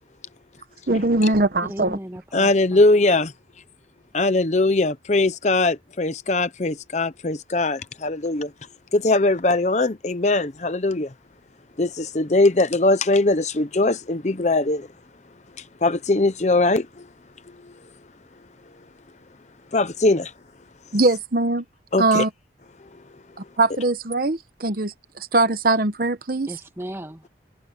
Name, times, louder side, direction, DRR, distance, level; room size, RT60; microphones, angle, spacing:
voice 1, 0.9-2.0 20.9-21.6 22.0-22.3 23.6-24.9 25.3-26.5, right 2 dB, 50° right, 1.0 m, -21 dB
voice 2, 1.6-2.8 26.5-27.3, equal, 15° right, 2.1 m, -36 dB
voice 3, 2.3-3.3 4.1-8.5 8.9-11.1 11.8-14.9 15.8-17.0 17.6-17.7 19.7-20.3 21.9-22.2, left 2 dB, 40° left, 0.7 m, -20 dB
head